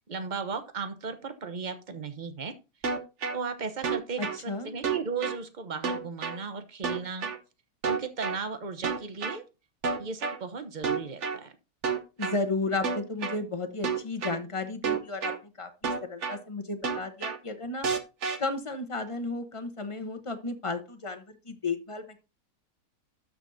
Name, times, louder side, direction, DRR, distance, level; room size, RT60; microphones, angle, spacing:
voice 1, 0.1-2.5 3.3-7.3 7.9-9.4 10.0-11.6, right 5 dB, 35° right, 9 dB, 0.9 m, -36 dB
sound 1, 2.8-3.4 3.8-4.4 4.8-5.4 5.8-6.4 6.8-7.4 7.8-8.4 8.8-9.4 9.8-10.4 10.8-11.4 11.8-12.4 12.8-13.4 13.8-14.4 14.8-15.4 15.8-16.4 16.8-17.4 17.8-18.4, right 5 dB, 50° right, 1.2 m, -29 dB
voice 2, 4.2-4.7 12.2-17.9 18.4-22.1, left 3 dB, 25° left, 7 dB, 0.9 m, -33 dB
12.5 x 6.3 x 2.7 m, 0.29 s
omnidirectional pair, 1.7 m